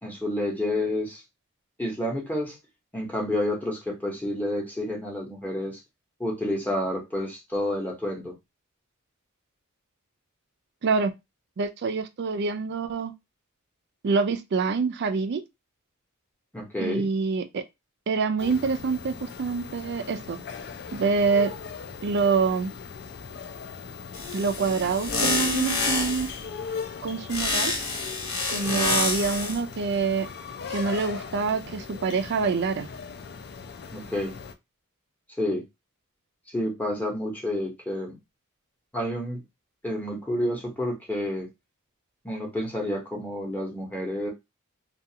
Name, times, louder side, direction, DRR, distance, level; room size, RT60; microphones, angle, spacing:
voice 1, 0.0-1.2 1.8-2.6 2.9-5.8 6.2-8.3 16.5-17.1 28.5-29.0 33.9-34.4 35.4-35.6 36.5-38.2 38.9-39.4 39.8-41.5 42.2-44.3, left 1 dB, 10° left, 0.7 m, -29 dB
voice 2, 10.8-11.1 11.6-13.1 14.0-15.4 16.8-17.6 18.1-20.4 20.9-21.5 22.0-22.7 24.3-26.3 27.0-27.7 28.5-30.3 30.7-32.9, right 4 dB, 50° right, 0.4 m, -26 dB
sound 1, 18.4-34.5, left 5 dB, 50° left, 0.3 m, -39 dB
sound 2, 24.1-26.4 27.3-29.6, left 3 dB, 80° left, 0.9 m, -27 dB
2.4 x 2.3 x 2.7 m
head